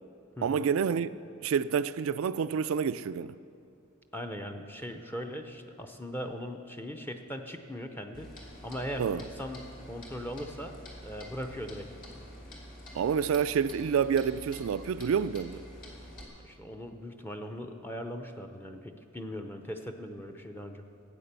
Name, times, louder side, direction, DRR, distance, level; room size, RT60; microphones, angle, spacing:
voice 1, 0.4-1.1 1.4-3.3 9.0-9.2 12.9-15.6, right 7 dB, 80° right, 0.3 m, -28 dB
voice 2, 4.1-8.3 8.6-10.8 11.0-11.9 16.4-20.8, equal, 10° left, 0.6 m, -39 dB
Clock, 8.1-16.3, equal, 45° left, 2.4 m, -47 dB
13.0 x 8.8 x 6.7 m
head